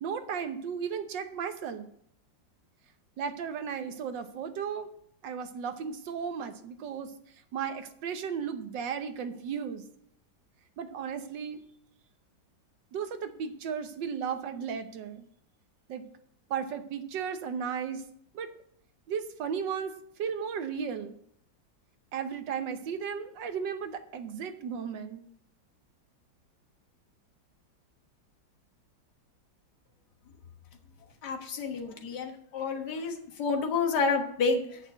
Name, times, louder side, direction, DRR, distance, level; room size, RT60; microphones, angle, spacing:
voice 1, 0.0-1.9 3.2-4.9 5.2-7.1 7.5-9.9 10.8-11.6 12.9-15.2 15.9-16.0 16.5-18.0 18.3-18.5 19.1-19.9 20.2-21.1 22.1-25.2, right 7 dB, 70° right, 9 dB, 1.6 m, -35 dB
voice 2, 31.2-34.8, left 4 dB, 60° left, 4 dB, 1.8 m, -29 dB
8.4 x 6.6 x 8.2 m, 0.68 s
omnidirectional pair, 2.1 m